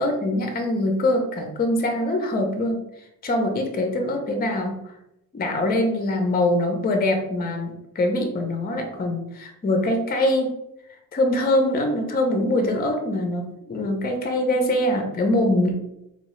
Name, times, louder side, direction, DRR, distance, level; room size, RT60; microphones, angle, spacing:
voice 1, 0.0-4.8 5.3-10.5 11.1-15.7, left 1 dB, 25° left, 3 dB, 0.5 m, -23 dB
4.0 x 2.7 x 3.0 m, 0.87 s
wide cardioid pair, 155°, 34 cm